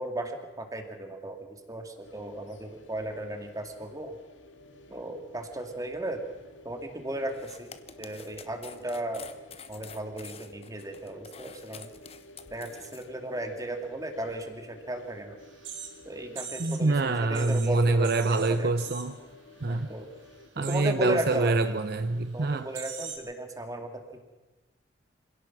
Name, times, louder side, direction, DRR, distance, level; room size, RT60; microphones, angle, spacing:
voice 1, 0.0-4.2 4.9-6.2 6.6-9.2 9.7-11.9 12.5-15.4 16.1-18.7 19.7-20.1 20.6-21.8 22.3-24.2, right 1 dB, 20° right, 5 dB, 2.3 m, -35 dB
sound 1, 2.0-20.5, left 1 dB, 75° left, 2.2 m, -53 dB
sound 2, 7.3-13.1, left 7 dB, 30° left, 1.1 m, -48 dB
sound 3, 15.4-16.9 17.2-19.3 19.6-19.9 20.2-20.9 21.6-21.7 22.3-22.4 22.7-23.2, right 7 dB, 85° right, 3.8 m, -42 dB
voice 2, 16.6-19.2 19.6-19.9 20.6-22.7, right 3 dB, 55° right, 10 dB, 0.7 m, -26 dB
26.0 x 17.0 x 6.1 m, 1.2 s
head